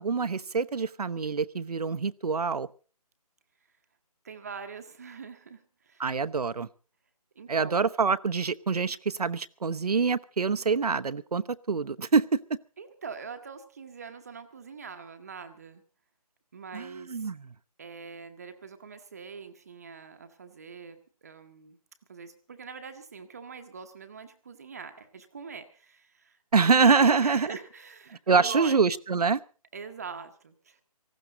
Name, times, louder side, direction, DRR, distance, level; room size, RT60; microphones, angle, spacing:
voice 1, 0.0-2.7 6.0-6.7 7.5-12.6 16.7-17.4 26.5-27.5 28.3-29.4, right 5 dB, 75° right, 15 dB, 0.9 m, -25 dB
voice 2, 4.2-6.1 7.3-7.8 12.8-15.8 16.5-17.3 17.8-21.8 22.1-26.4 26.7-28.8 29.7-30.8, right 5 dB, 25° right, 7 dB, 1.0 m, -43 dB
18.5 x 15.5 x 3.9 m, 0.37 s
hypercardioid pair, 170°, 20 cm